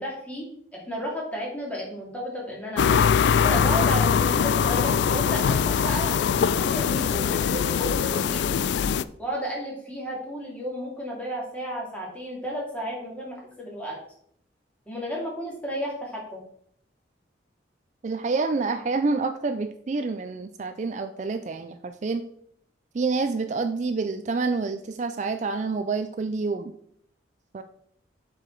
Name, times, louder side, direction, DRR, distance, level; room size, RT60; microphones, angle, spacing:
voice 1, 0.0-2.9 3.4-8.5 9.2-14.0 14.9-16.4, equal, 10° left, -3 dB, 2.4 m, -33 dB
sound 1, 2.8-9.0, left 7 dB, 65° left, 0.3 m, -22 dB
voice 2, 18.0-22.2 22.9-26.7 27.5-27.6, right 4 dB, 40° right, 9 dB, 0.4 m, -28 dB
7.6 x 5.0 x 4.5 m, 0.67 s
head